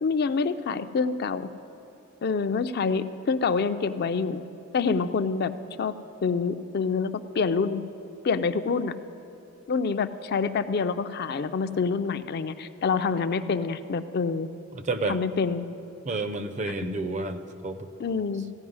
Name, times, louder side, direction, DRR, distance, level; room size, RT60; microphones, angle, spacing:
voice 1, 0.0-1.5 2.2-4.4 4.7-5.5 5.8-5.9 6.2-7.8 8.2-8.9 9.7-14.5 15.1-15.7 18.0-18.4, left 5 dB, 50° left, 11 dB, 0.4 m, -26 dB
voice 2, 14.7-15.2 16.0-17.9, right 2 dB, 35° right, 11 dB, 0.5 m, -30 dB
15.0 x 5.4 x 9.5 m, 2.8 s
head